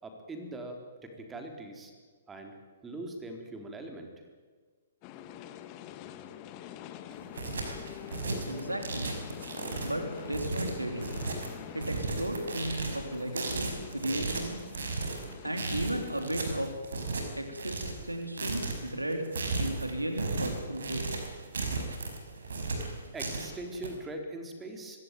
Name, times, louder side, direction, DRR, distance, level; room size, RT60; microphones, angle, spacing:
voice 1, 0.0-1.9 2.3-2.6 2.8-4.1 23.1-25.0, right 2 dB, 10° right, 4 dB, 3.9 m, -41 dB
sound 1, 5.0-16.7, left 11 dB, 30° left, 1.5 m, -46 dB
sound 2, 7.1-23.9, right 3 dB, 60° right, 5.5 m, -35 dB
voice 2, 8.5-9.1 9.8-11.1 11.7-14.6 15.4-16.7 17.4-19.3 19.6-21.1, right 1 dB, 85° right, 5 dB, 3.6 m, -35 dB
24.0 x 17.5 x 9.3 m, 1.5 s
figure-of-eight pair, 120°, 0 cm